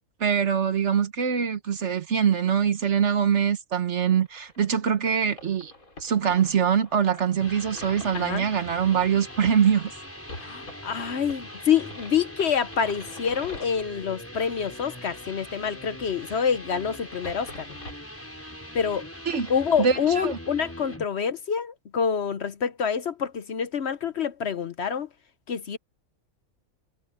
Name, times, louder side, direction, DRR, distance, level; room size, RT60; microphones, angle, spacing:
voice 1, 0.2-5.7 6.0-9.9 19.3-19.5 19.8-20.4, right 7 dB, 55° right, 1.3 m, -23 dB
sound 1, 4.2-21.0, left 2 dB, 80° left, 5.7 m, -47 dB
sound 2, 7.2-21.1, equal, 10° left, 6.6 m, -42 dB
voice 2, 10.4-17.6 18.7-19.1 19.5-25.1 25.5-25.8, left 7 dB, 55° left, 1.0 m, -27 dB
omnidirectional pair, 1.5 m